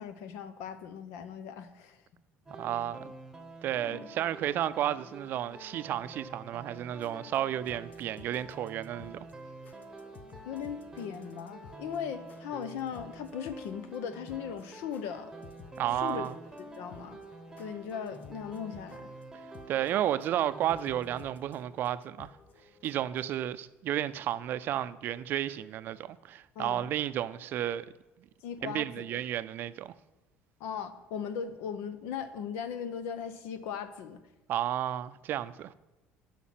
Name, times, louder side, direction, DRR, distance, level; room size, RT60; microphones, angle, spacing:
voice 1, 0.0-2.0 3.8-4.1 10.4-15.3 15.9-16.3 16.6-17.2 17.6-19.1 26.5-26.9 28.4-29.2 30.6-34.2, left 7 dB, 85° left, 0.8 m, -38 dB
sound 1, 2.5-21.2, right 2 dB, 10° right, 1.1 m, -48 dB
voice 2, 2.6-3.1 3.6-9.3 15.8-16.4 19.7-22.3 22.8-27.9 28.6-29.9 34.5-35.7, right 11 dB, 55° right, 0.4 m, -32 dB
sound 2, 6.8-23.3, left 6 dB, 40° left, 0.8 m, -56 dB
8.3 x 5.8 x 7.5 m
cardioid pair, 125°, 4 cm